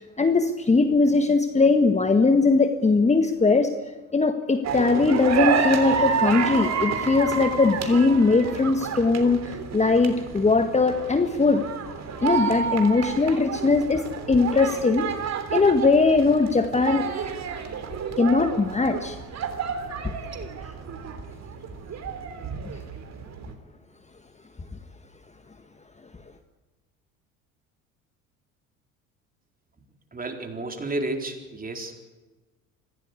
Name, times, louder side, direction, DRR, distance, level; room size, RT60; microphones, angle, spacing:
voice 1, 0.0-3.7 4.1-11.6 12.2-17.0 18.2-19.2 20.0-20.1, left 3 dB, 15° left, 7 dB, 1.7 m, -20 dB
sound 1, 4.6-23.5, right 6 dB, 40° right, 3.5 m, -30 dB
voice 2, 30.1-31.9, right 2 dB, 20° right, 4 dB, 4.1 m, -31 dB
25.5 x 16.5 x 8.5 m, 1.2 s
hypercardioid pair, 65°, 41 cm